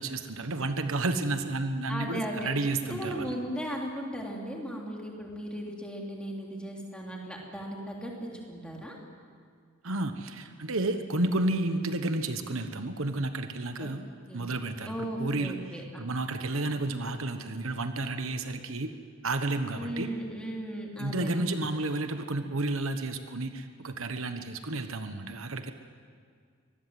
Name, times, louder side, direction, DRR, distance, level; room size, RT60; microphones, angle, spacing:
voice 1, 0.0-3.3 9.8-14.0 14.3-15.5 16.0-18.9 19.2-20.1 21.0-25.7, right 2 dB, 70° right, 8 dB, 1.2 m, -31 dB
voice 2, 1.9-9.0 13.8-13.9 14.3-14.4 14.9-16.0 19.7-21.5, right 1 dB, 5° left, -1 dB, 3.3 m, -37 dB
24.5 x 20.0 x 7.8 m, 2.1 s
head